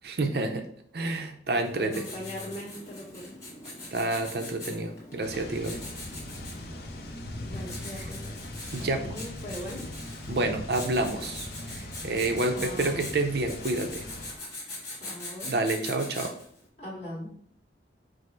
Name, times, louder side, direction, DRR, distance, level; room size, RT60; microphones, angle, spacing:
voice 1, 0.0-0.6 0.9-2.0 3.9-5.8 8.7-9.2 10.3-14.1 15.4-16.3, right 2 dB, 60° right, 5 dB, 0.6 m, -29 dB
Writing, 1.6-16.6, left 2 dB, 15° left, 1.6 m, -42 dB
voice 2, 1.8-3.4 7.4-8.4 8.8-9.8 12.5-13.0 14.9-15.5 16.8-17.3, left 1 dB, 35° left, -6 dB, 1.7 m, -40 dB
sound 1, 5.2-14.4, left 1 dB, 60° left, 0.6 m, -40 dB
5.1 x 2.1 x 4.4 m, 0.62 s
head